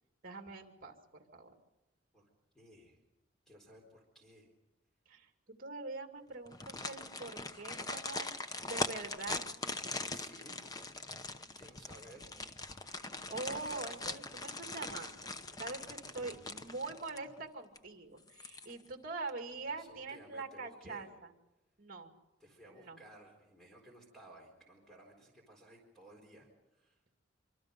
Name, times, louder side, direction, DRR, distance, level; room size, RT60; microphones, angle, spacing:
voice 1, 0.2-0.9 1.3-1.5 5.1-5.3 5.6-8.3 8.6-9.5 12.8-15.2 15.6-21.3 21.8-22.1 22.8-23.0, right 3 dB, 45° right, 4 dB, 2.4 m, -44 dB
voice 2, 2.5-3.0 3.5-4.5 9.2-9.3 10.1-10.7 11.5-12.3 16.1-16.6 19.7-21.1 22.4-27.0, right 1 dB, ahead, 0 dB, 4.2 m, -57 dB
sound 1, 6.5-17.4 17.8-17.9 18.3-18.9 19.3-19.4, left 3 dB, 20° left, 0.8 m, -41 dB
26.0 x 24.5 x 5.3 m, 0.97 s
head